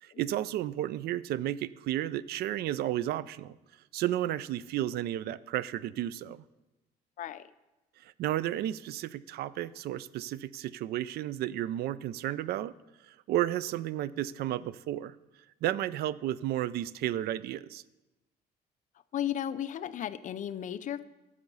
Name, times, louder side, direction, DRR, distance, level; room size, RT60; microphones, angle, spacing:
voice 1, 0.0-3.6 3.9-6.4 8.0-12.7 13.1-15.2 15.6-17.8, right 13 dB, 70° right, 18 dB, 0.4 m, -32 dB
voice 2, 7.2-7.5 19.1-21.0, left 10 dB, 50° left, 14 dB, 0.5 m, -34 dB
11.5 x 6.8 x 5.5 m, 1.0 s
cardioid pair, 110°, 17 cm